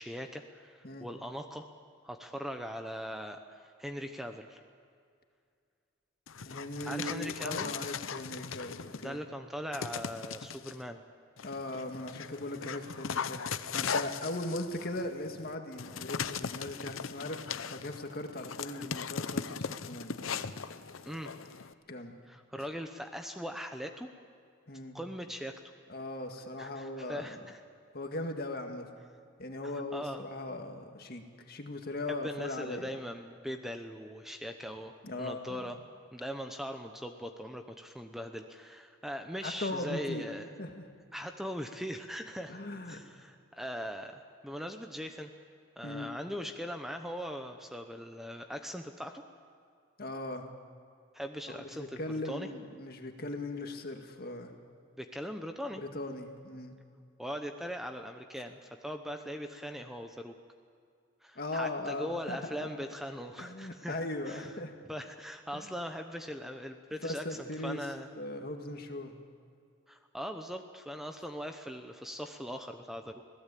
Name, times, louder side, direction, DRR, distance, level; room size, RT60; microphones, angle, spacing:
voice 1, 0.0-1.7 2.0-4.6 6.8-7.7 8.9-11.0 21.0-21.3 22.3-24.1 24.9-25.6 26.6-27.6 29.9-30.3 32.1-35.8 36.1-40.5 41.1-42.6 42.9-45.3 45.8-49.2 51.1-52.0 52.2-52.5 55.0-55.8 57.2-60.3 61.2-64.5 64.9-68.1 69.9-73.2, equal, ahead, 5 dB, 0.8 m, -40 dB
Dog, 6.3-9.2 9.7-10.7 11.4-21.7, left 6 dB, 80° left, 0.8 m, -38 dB
voice 2, 6.4-9.2 11.4-20.6 21.9-22.2 24.7-25.0 25.9-27.4 27.9-28.9 29.4-33.0 35.0-35.6 39.4-40.3 40.6-40.9 42.5-43.0 45.8-46.1 50.0-50.5 51.5-54.6 55.8-56.8 61.4-62.8 63.4-64.7 65.5-65.7 67.0-67.9 68.2-69.2, left 2 dB, 50° left, 4 dB, 1.9 m, -39 dB
26.0 x 17.5 x 8.5 m, 2.3 s
head